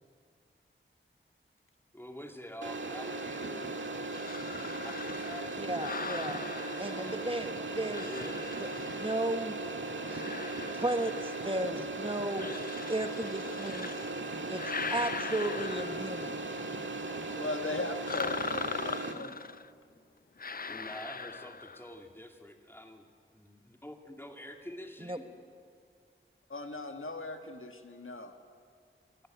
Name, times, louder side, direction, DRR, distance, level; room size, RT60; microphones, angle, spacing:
voice 1, 1.9-3.9 4.8-6.0 6.4-7.2 8.0-8.4 20.7-23.1 23.3-25.3, equal, 10° left, 3 dB, 2.4 m, -47 dB
sound 1, 2.6-19.1, right 2 dB, 65° right, 1.7 m, -38 dB
sound 2, 4.1-7.5 7.9-9.5 10.0-11.7 12.3-14.1 14.5-16.4 18.1-19.7 20.4-21.9, left 5 dB, 45° left, 0.5 m, -40 dB
voice 2, 5.5-6.5 6.8-8.1 8.6-9.6 10.1-10.2 10.7-12.5 12.9-13.9 14.5-14.6 14.9-16.4 19.1-19.3 25.0-25.2, right 1 dB, 25° right, 7 dB, 1.2 m, -34 dB
voice 3, 17.3-19.3 26.5-28.3, left 3 dB, 75° left, 5 dB, 1.6 m, -38 dB
26.5 x 12.5 x 9.4 m, 2.2 s
wide cardioid pair, 55°, 21 cm